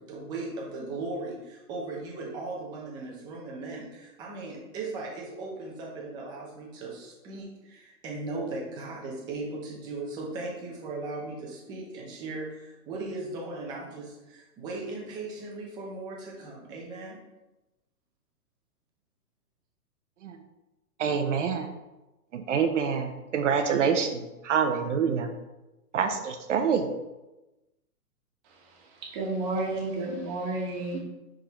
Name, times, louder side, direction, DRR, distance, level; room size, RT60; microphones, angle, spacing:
voice 1, 0.0-17.2, right 2 dB, 10° right, -2 dB, 0.6 m, -37 dB
voice 2, 21.0-21.7 22.3-25.3 25.9-26.9, right 6 dB, 55° right, 6 dB, 0.8 m, -26 dB
voice 3, 29.0-31.0, right 2 dB, 25° right, -1 dB, 1.3 m, -31 dB
10.0 x 3.8 x 3.0 m, 1.0 s
hypercardioid pair, 155°, 45 cm